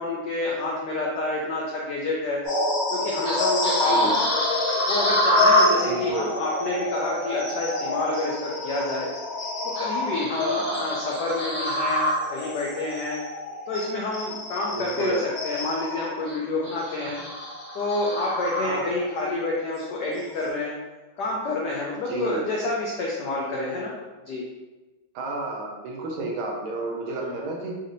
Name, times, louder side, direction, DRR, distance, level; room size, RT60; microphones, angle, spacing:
voice 1, 0.0-2.4 2.9-4.4 4.9-9.1 9.8-13.2 13.7-17.2 17.7-20.7 21.2-23.9 24.3-24.4 27.2-27.4, left 2 dB, 85° left, -3 dB, 0.9 m, -28 dB
sound 1, 2.4-19.1 19.6-19.8 20.3-20.5, left 1 dB, 60° left, 2.0 m, -26 dB
voice 2, 3.8-4.2 5.8-6.3 10.4-10.9 14.7-15.2 17.0-17.2 18.6-18.9 22.0-22.4 25.1-27.8, right 3 dB, 75° right, 0 dB, 1.4 m, -31 dB
4.1 x 2.7 x 2.6 m, 1.2 s
omnidirectional pair, 2.4 m